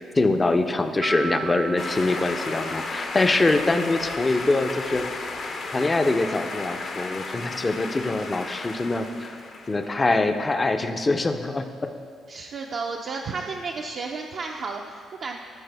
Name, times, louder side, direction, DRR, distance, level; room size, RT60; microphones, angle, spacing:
voice 1, 0.1-5.1 5.7-9.4 9.7-11.9, left 2 dB, 25° left, 8 dB, 0.5 m, -24 dB
Piano, 1.0-3.8, right 5 dB, 75° right, 1.1 m, -36 dB
sound 1, 1.8-10.1, left 3 dB, 55° left, 0.8 m, -34 dB
voice 2, 12.3-15.4, right 4 dB, 60° right, 0 dB, 0.5 m, -32 dB
12.5 x 4.7 x 3.4 m, 2.2 s
cardioid pair, 90°, 0 cm